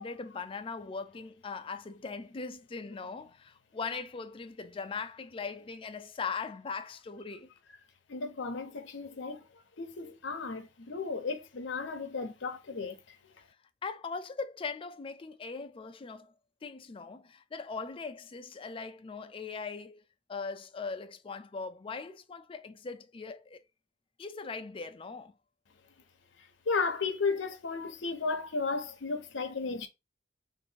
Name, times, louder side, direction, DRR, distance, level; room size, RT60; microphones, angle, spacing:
voice 1, 0.0-7.5 13.8-16.3 16.6-20.0 20.3-23.6 24.2-25.3, left 4 dB, 30° left, 0.4 m, -40 dB
voice 2, 8.1-9.4 9.8-13.0 26.7-29.9, left 4 dB, 75° left, 0.7 m, -34 dB
2.8 x 2.6 x 4.3 m
head